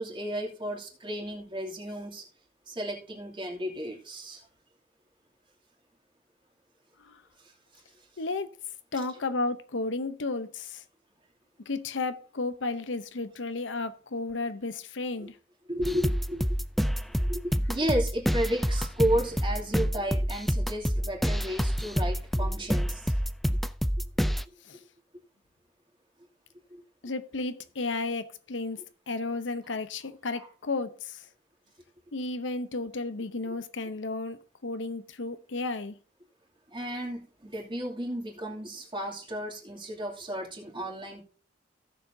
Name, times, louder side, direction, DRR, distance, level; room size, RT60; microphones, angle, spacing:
voice 1, 0.0-2.2 2.7-4.4 15.7-16.5 17.2-23.0 26.7-26.8 36.7-41.2, right 1 dB, 25° right, 2.7 m, -33 dB
voice 2, 8.2-8.5 8.9-10.8 11.7-15.4 24.6-24.8 27.0-28.8 29.1-31.3 32.1-35.9, left 3 dB, 90° left, 0.8 m, -33 dB
sound 1, 15.8-24.4, equal, ahead, 0.4 m, -28 dB
16.5 x 7.0 x 2.7 m
head